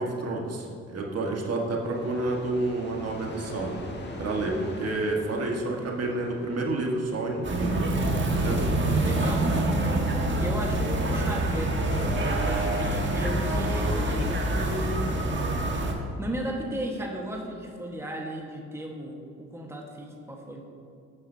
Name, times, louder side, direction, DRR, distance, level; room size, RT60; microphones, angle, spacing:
voice 1, 0.0-3.7 4.2-7.9 8.2-8.7, right 2 dB, 55° right, 0 dB, 1.7 m, -29 dB
sound 1, 1.8-9.9, left 2 dB, 35° left, 1.7 m, -43 dB
sound 2, 7.4-15.9, right 1 dB, 40° right, 1.6 m, -26 dB
voice 2, 9.0-9.7 10.4-15.1 16.2-20.6, equal, 10° right, 0 dB, 1.5 m, -35 dB
13.5 x 9.9 x 2.8 m, 2.5 s
cardioid pair, 90°, 30 cm